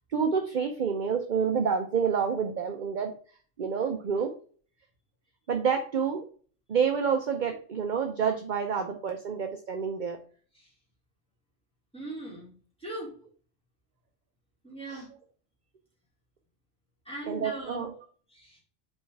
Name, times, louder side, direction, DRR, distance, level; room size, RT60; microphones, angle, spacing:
voice 1, 0.1-3.1 3.6-4.3 5.5-6.2 6.7-10.2 14.9-15.0 17.3-17.9, right 6 dB, 45° right, 5 dB, 0.8 m, -28 dB
voice 2, 11.9-12.5 12.8-13.1 14.6-15.1 17.0-17.8 18.3-18.6, right 2 dB, 5° left, -3 dB, 2.7 m, -39 dB
5.6 x 4.4 x 4.5 m, 0.43 s
omnidirectional pair, 1.3 m